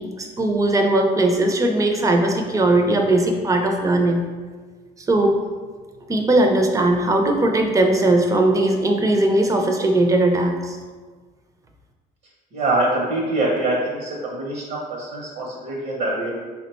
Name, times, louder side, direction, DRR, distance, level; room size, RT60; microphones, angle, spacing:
voice 1, 0.0-4.2 5.1-5.4 6.1-10.8, right 1 dB, 20° right, 2 dB, 0.5 m, -19 dB
voice 2, 12.5-16.4, right 2 dB, 60° right, -3 dB, 0.7 m, -24 dB
3.6 x 2.1 x 4.1 m, 1.5 s
cardioid pair, 110°, 17 cm